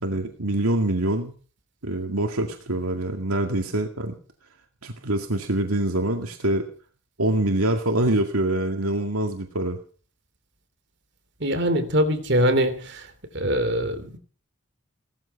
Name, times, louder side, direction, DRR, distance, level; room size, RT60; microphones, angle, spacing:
voice 1, 0.0-1.3 1.8-4.2 4.8-6.7 7.2-9.8, right 1 dB, 85° right, 2.1 m, -25 dB
voice 2, 11.4-12.8 13.3-14.2, equal, 50° right, 3.1 m, -22 dB
18.0 x 14.0 x 5.8 m
head